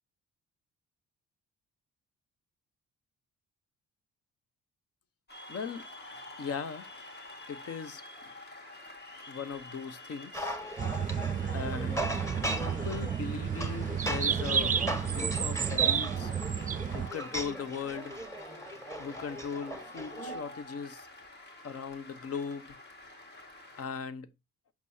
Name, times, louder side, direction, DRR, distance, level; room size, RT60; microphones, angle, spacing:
Cheering / Applause, 5.3-23.9, left 1 dB, 35° left, 1.9 m, -48 dB
voice 1, 5.5-5.9 6.4-6.9 7.5-8.0 9.3-10.6 11.5-12.1 12.6-16.3 16.9-18.2 19.0-21.1 21.6-22.8 23.3-23.5 23.8-24.3, left 6 dB, 50° left, 0.9 m, -39 dB
sound 1, 10.3-20.4, right 1 dB, 10° left, 1.5 m, -38 dB
sound 2, 10.8-17.1, right 8 dB, 25° right, 0.5 m, -31 dB
8.3 x 5.9 x 2.7 m
cardioid pair, 90°, 30 cm